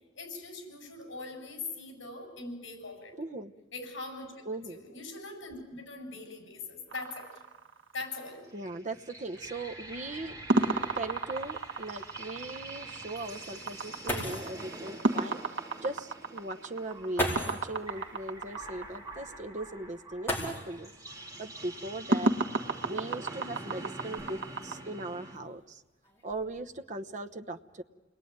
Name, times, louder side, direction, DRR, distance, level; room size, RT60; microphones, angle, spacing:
voice 1, 0.1-3.1 3.7-4.3 4.6-7.3 7.9-8.4, left 3 dB, 75° left, 3 dB, 7.7 m, -41 dB
voice 2, 3.2-3.5 4.5-4.8 8.5-10.4 10.9-20.9 21.4-22.3 22.8-25.8 26.2-27.8, right 2 dB, 40° right, 6 dB, 1.0 m, -39 dB
sound 1, 6.9-8.3 10.5-19.1 22.1-24.8, right 2 dB, 70° right, 1.5 m, -32 dB
sound 2, 8.4-25.4, right 2 dB, 20° right, 2.6 m, -46 dB
sound 3, 10.2-10.3 10.7-10.8 11.4-11.5 13.7-13.8 14.1-14.6 15.9-16.0 17.1-17.7 20.2-21.0 22.3-22.4 23.2-24.6 25.3-25.7 26.0-26.4, equal, 10° left, 4.7 m, -35 dB
29.0 x 21.0 x 9.5 m, 1.2 s
head